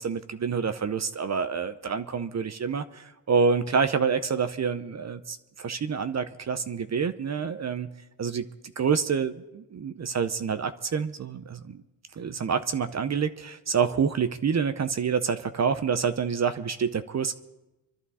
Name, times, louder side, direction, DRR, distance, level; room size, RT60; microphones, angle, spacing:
voice 1, 0.0-7.9 8.2-8.5 8.8-9.3 9.7-11.8 12.1-17.3, right 6 dB, 40° right, 11 dB, 0.7 m, -27 dB
25.0 x 11.5 x 4.2 m, 0.99 s
cardioid pair, 85°, 42 cm